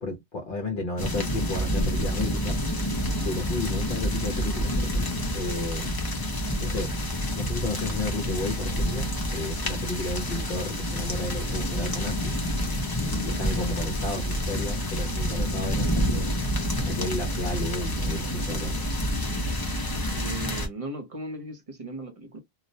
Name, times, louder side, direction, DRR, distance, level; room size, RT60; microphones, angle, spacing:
voice 1, 0.0-2.6 3.2-6.0 6.6-7.0 7.3-12.3 13.0-16.3 16.8-18.8, left 2 dB, 60° left, 0.8 m, -33 dB
sound 1, 1.0-20.7, equal, 25° left, 0.5 m, -28 dB
voice 2, 20.1-22.4, right 2 dB, 35° right, 0.8 m, -37 dB
2.3 x 2.1 x 2.7 m
omnidirectional pair, 1.1 m